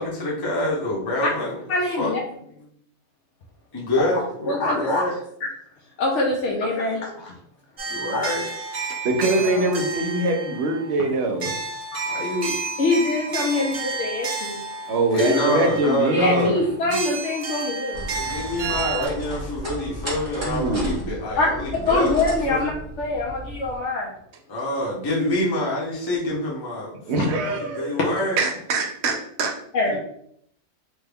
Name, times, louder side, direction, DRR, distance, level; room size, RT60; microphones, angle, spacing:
voice 1, 0.0-1.6 2.0-2.4 3.7-5.1 7.9-8.4 12.1-12.5 13.6-13.7 15.1-16.6 18.1-22.2 22.5-22.7 24.5-28.4 29.8-30.0, left 1 dB, 20° left, -5 dB, 0.7 m, -26 dB
voice 2, 1.7-2.2 4.0-4.1 4.5-5.0 6.0-7.3 9.4-9.7 12.8-14.6 16.1-18.1 21.4-21.5 21.9-22.7 23.0-24.1 29.7-30.0, left 2 dB, 75° left, -2 dB, 0.9 m, -24 dB
sound 1, 7.8-19.1, right 4 dB, 50° right, 0.4 m, -31 dB
voice 3, 9.0-11.5 14.9-16.5 20.4-21.1 27.1-28.0 28.4-29.5, right 2 dB, 65° right, 3 dB, 0.8 m, -23 dB
sound 2, 17.9-23.8, equal, 25° right, 0.9 m, -34 dB
3.1 x 2.2 x 3.4 m, 0.70 s
omnidirectional pair, 1.3 m